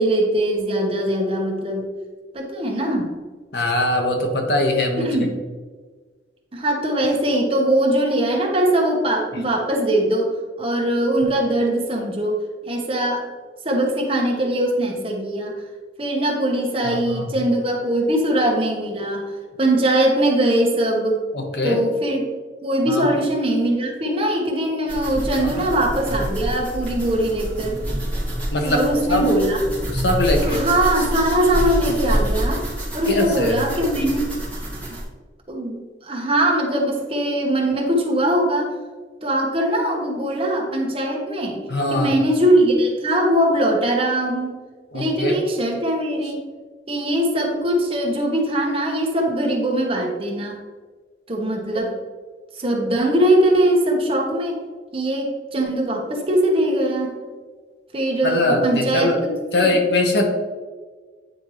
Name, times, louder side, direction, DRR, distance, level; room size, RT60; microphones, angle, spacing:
voice 1, 0.0-1.9 2.3-3.1 5.0-5.3 6.5-10.3 10.6-13.3 13.6-15.5 16.0-19.3 19.6-21.2 21.6-22.2 22.6-27.8 28.6-29.6 30.4-34.3 35.5-38.7 39.2-41.6 41.9-44.5 44.9-46.4 46.9-50.6 51.3-51.9 52.6-54.6 54.9-57.1 57.9-59.8, right 1 dB, 30° right, 0 dB, 1.1 m, -21 dB
voice 2, 3.5-5.1 16.8-17.3 21.3-21.8 22.9-23.1 25.4-25.6 28.5-28.8 29.1-29.3 29.9-30.6 33.1-33.6 41.7-42.1 44.9-45.4 58.2-59.2 59.5-60.2, left 1 dB, 65° left, 2 dB, 1.1 m, -21 dB
sound 1, 24.9-35.0, equal, 10° left, 2.0 m, -27 dB
9.1 x 4.4 x 3.1 m, 1.4 s
head